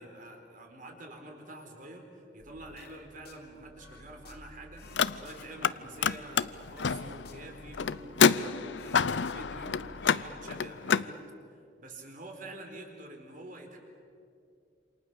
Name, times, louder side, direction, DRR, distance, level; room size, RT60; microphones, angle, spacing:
voice 1, 0.0-11.2 11.5-13.8, right 1 dB, 50° right, 3 dB, 4.6 m, -47 dB
sound 1, 2.4-10.1, equal, 20° right, 1.5 m, -54 dB
sound 2, 2.8-3.4 3.8-6.3 6.7-8.5 8.8-10.3 10.5-10.8, left 4 dB, 65° left, 3.1 m, -55 dB
Car, 4.8-5.7 6.0-11.1, left 6 dB, 90° left, 0.6 m, -28 dB
28.0 x 28.0 x 7.1 m, 2.5 s
head